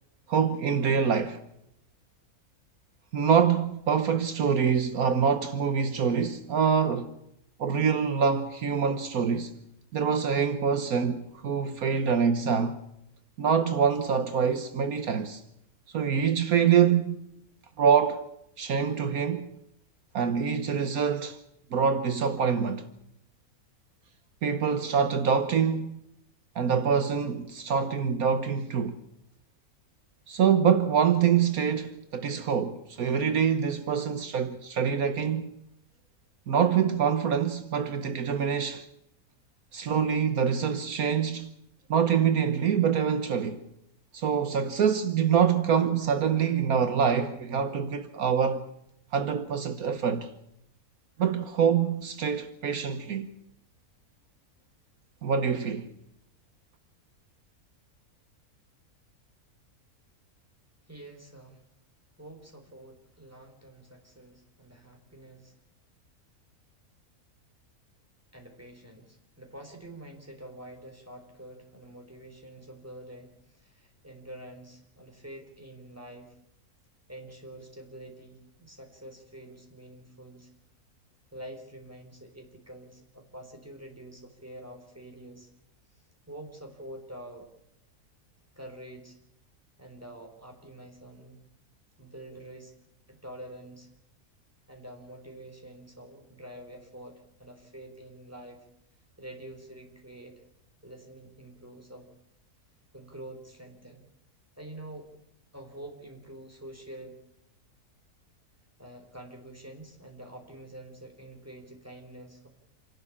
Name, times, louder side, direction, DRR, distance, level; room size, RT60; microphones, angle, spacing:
voice 1, 0.3-1.4 3.1-7.1 7.6-9.6 9.9-12.8 13.4-15.4 15.9-17.2 17.8-18.2 18.6-19.5 20.1-21.4 21.7-22.9 24.4-26.0 26.5-29.0 30.3-35.5 36.5-38.9 39.7-41.5 41.9-43.6 44.1-48.7 49.1-50.3 51.2-53.3 55.2-55.9, right 7 dB, 70° right, 1.5 m, -25 dB
voice 2, 60.9-61.6 62.2-65.6 68.3-76.4 77.1-80.5 81.3-85.5 85.9-87.5 88.6-89.2 89.8-91.4 92.0-92.7 93.1-93.9 94.7-98.6 99.2-100.4 100.8-102.1 102.9-104.1 104.6-105.1 105.5-107.2 108.8-112.5, right 1 dB, 10° right, 3.9 m, -46 dB
27.5 x 12.0 x 8.6 m
omnidirectional pair, 1.6 m